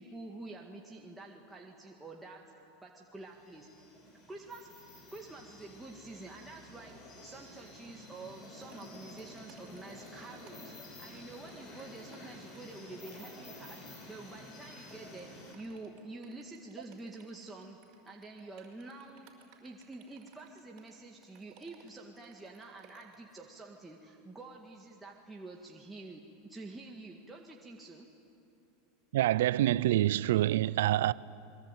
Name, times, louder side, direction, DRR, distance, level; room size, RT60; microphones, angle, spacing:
voice 1, 0.0-3.9 4.3-4.7 5.1-17.8 18.0-19.3 19.6-28.1, right 2 dB, 10° right, 1.9 m, -48 dB
sound 1, 3.3-15.5, left 1 dB, 35° left, 6.5 m, -51 dB
sound 2, 8.7-23.3, right 8 dB, 45° right, 5.1 m, -62 dB
voice 2, 29.1-31.1, right 14 dB, 80° right, 0.6 m, -26 dB
28.0 x 22.5 x 9.2 m
supercardioid pair, 145°, 0 cm